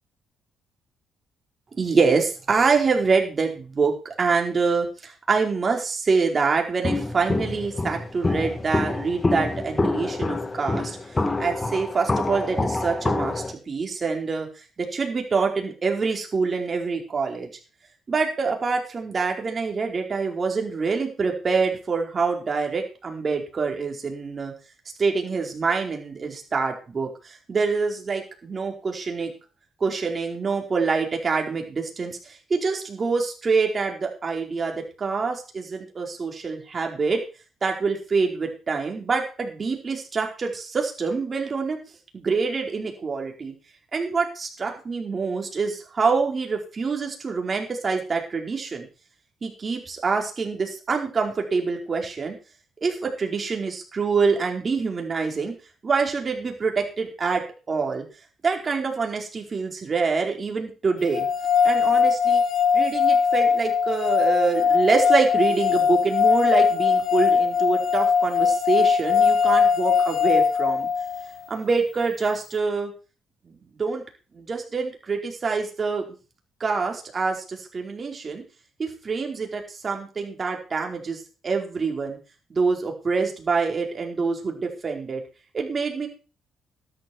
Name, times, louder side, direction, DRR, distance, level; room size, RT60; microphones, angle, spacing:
voice 1, 1.8-11.0 11.4-17.5 18.1-24.5 25.0-29.3 29.8-37.2 37.6-41.8 42.1-43.5 43.9-48.9 49.4-52.4 52.8-55.5 55.8-58.0 58.4-61.3 61.6-62.4 62.7-70.9 71.5-72.9 73.4-74.0 74.3-76.0 76.6-78.4 78.8-82.2 82.5-85.2 85.5-86.1, right 4 dB, 35° right, 2 dB, 4.8 m, -26 dB
Walk footsteps, 6.8-13.5, left 2 dB, 20° left, 1.6 m, -26 dB
sound 1, 61.1-71.3, left 6 dB, 70° left, 1.8 m, -20 dB
13.0 x 11.5 x 4.7 m, 0.34 s
cardioid pair, 90°, 0 cm